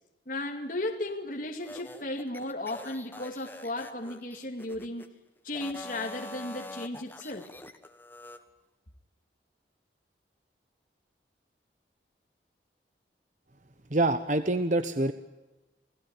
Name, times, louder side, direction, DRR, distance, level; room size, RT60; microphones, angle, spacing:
voice 1, 0.3-5.0 5.4-7.5, left 2 dB, 50° left, 1 dB, 2.4 m, -35 dB
sound 1, 1.6-5.1 5.5-8.4, left 1 dB, 10° left, 1.5 m, -45 dB
voice 2, 13.9-15.1, right 2 dB, 45° right, 10 dB, 1.1 m, -26 dB
29.5 x 17.5 x 9.0 m, 1.1 s
head